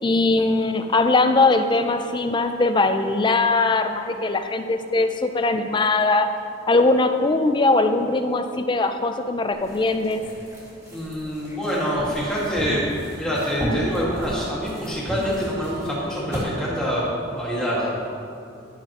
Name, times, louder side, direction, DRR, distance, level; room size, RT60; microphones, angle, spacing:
voice 1, 0.0-6.3 6.7-10.3, left 3 dB, 25° left, 8 dB, 0.4 m, -20 dB
sound 1, 9.5-16.5, equal, 15° right, 1.8 m, -34 dB
voice 2, 10.9-12.9 13.2-17.9, equal, 5° left, -8 dB, 1.8 m, -26 dB
12.0 x 6.3 x 2.9 m, 2.6 s
head